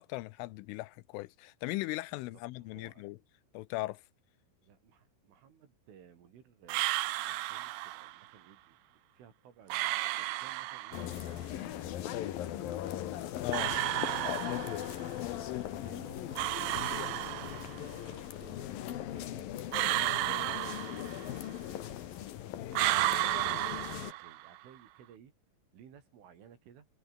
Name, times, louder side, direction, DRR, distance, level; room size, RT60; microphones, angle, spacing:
voice 1, 0.0-3.2 3.5-4.0 13.4-13.8 14.2-14.6 15.2-16.0, left 20 dB, 80° left, 3.2 m, -38 dB
voice 2, 2.6-3.1 4.6-8.8 9.1-11.6 12.0-12.8 14.6-14.8 15.7-22.3 23.2-25.3 25.7-26.9, right 8 dB, 70° right, 6.2 m, -58 dB
sound 1, 6.7-8.2 9.7-11.2 13.5-15.1 16.4-17.9 19.7-21.5 22.7-24.6, right 17 dB, 90° right, 2.2 m, -33 dB
sound 2, 10.9-24.1, left 12 dB, 60° left, 2.6 m, -39 dB
omnidirectional pair, 5.8 m